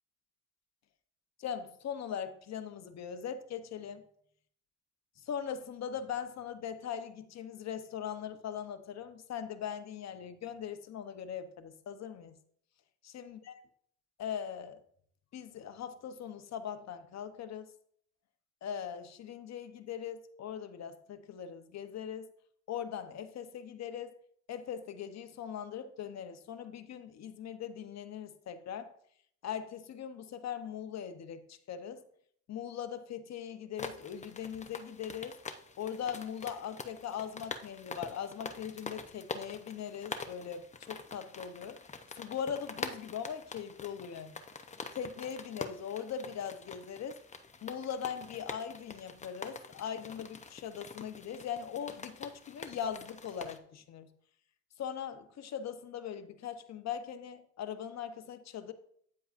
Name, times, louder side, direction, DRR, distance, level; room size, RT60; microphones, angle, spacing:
voice 1, 1.4-4.0 5.2-12.4 13.0-13.6 14.2-14.8 15.3-17.7 18.6-22.3 22.7-24.1 24.5-28.9 29.4-32.0 32.5-35.4 35.8-41.8 42.1-44.3 44.9-47.2 47.6-54.1 54.8-58.7, left 8 dB, 60° left, 10 dB, 0.9 m, -40 dB
sound 1, 33.8-53.6, left 4 dB, 25° left, 0.7 m, -45 dB
9.4 x 7.6 x 2.5 m, 0.64 s
cardioid pair, 90°, 30 cm